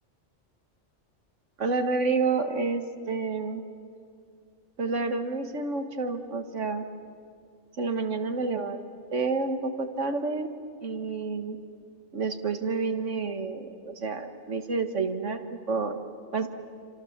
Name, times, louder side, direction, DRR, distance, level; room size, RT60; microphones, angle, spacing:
voice 1, 1.6-3.6 4.8-6.9 7.8-10.5 10.8-11.6 12.1-16.0 16.3-16.5, right 4 dB, 80° right, 7 dB, 1.8 m, -29 dB
28.5 x 26.0 x 7.3 m, 2.3 s
omnidirectional pair, 1.2 m